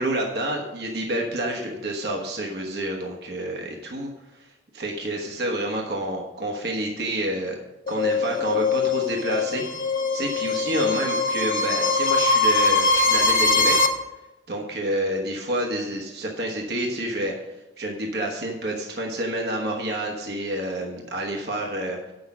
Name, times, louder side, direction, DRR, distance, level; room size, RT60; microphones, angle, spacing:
voice 1, 0.0-4.5 4.7-7.6 7.9-9.6 10.1-13.8 14.5-17.3 17.8-22.0, right 1 dB, 60° right, 0 dB, 1.2 m, -28 dB
sound 1, 7.9-13.9, left 3 dB, 45° left, 0.7 m, -22 dB
8.4 x 6.4 x 6.0 m, 1.0 s
head